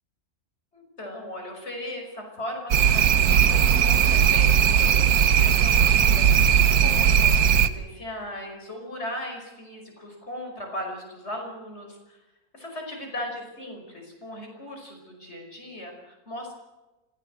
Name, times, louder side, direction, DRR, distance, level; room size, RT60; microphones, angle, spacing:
voice 1, 0.7-12.2 12.5-16.5, left 1 dB, 45° left, 2 dB, 5.8 m, -38 dB
sound 1, 2.7-7.7, right 8 dB, 85° right, 1.5 m, -18 dB
25.5 x 17.0 x 7.8 m, 1.1 s
omnidirectional pair, 1.6 m